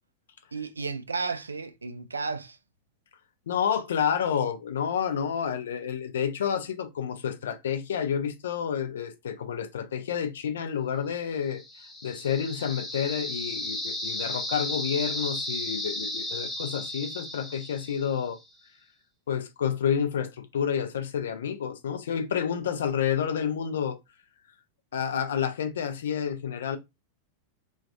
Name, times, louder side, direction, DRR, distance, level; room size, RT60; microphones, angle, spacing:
voice 1, 0.5-2.6, right 4 dB, 75° right, 0.3 m, -33 dB
voice 2, 3.5-11.6 12.0-18.4 19.3-24.0 24.9-26.8, left 8 dB, 65° left, 0.4 m, -29 dB
sound 1, 11.5-18.4, left 1 dB, 5° left, 0.8 m, -34 dB
2.3 x 2.2 x 2.5 m
figure-of-eight pair, 90°, 0 cm